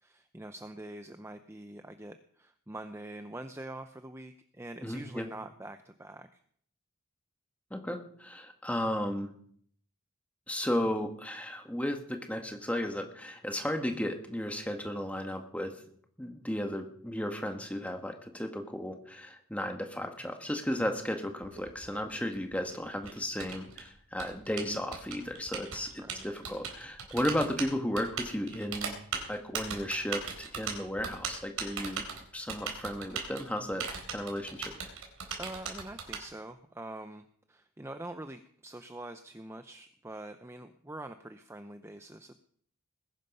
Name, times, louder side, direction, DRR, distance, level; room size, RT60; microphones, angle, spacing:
voice 1, 0.0-6.4 26.0-26.3 35.4-42.3, right 1 dB, 10° right, 8 dB, 0.6 m, -45 dB
voice 2, 4.8-5.3 7.7-9.3 10.5-15.8 16.2-28.9 29.3-32.0 32.3-33.9 34.1-34.8, left 1 dB, 5° left, 5 dB, 1.6 m, -34 dB
Typing, 21.4-36.2, right 5 dB, 85° right, 4.0 m, -39 dB
20.5 x 11.0 x 5.5 m, 0.63 s
head